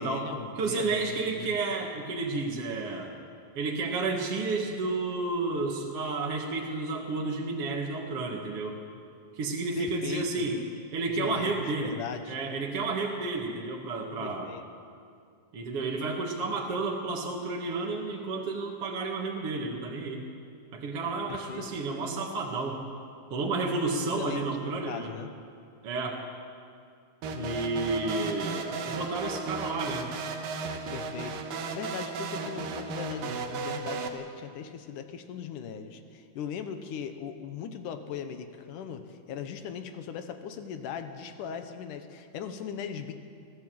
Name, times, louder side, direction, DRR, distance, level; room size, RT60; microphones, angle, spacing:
voice 1, 0.0-1.5 9.8-10.4 11.1-12.4 14.2-14.6 21.3-21.7 24.0-25.3 27.3-27.7 30.9-43.1, left 7 dB, 70° left, 8 dB, 2.5 m, -39 dB
voice 2, 0.6-3.1 3.5-8.8 9.3-10.6 10.9-11.9 12.3-14.5 15.5-20.3 20.7-22.8 23.3-25.1 25.8-26.2 27.4-30.1, right 3 dB, 50° right, -1 dB, 2.4 m, -31 dB
sound 1, 27.2-34.1, right 4 dB, 80° right, 3.0 m, -35 dB
23.0 x 16.0 x 7.8 m, 2.4 s
omnidirectional pair, 3.9 m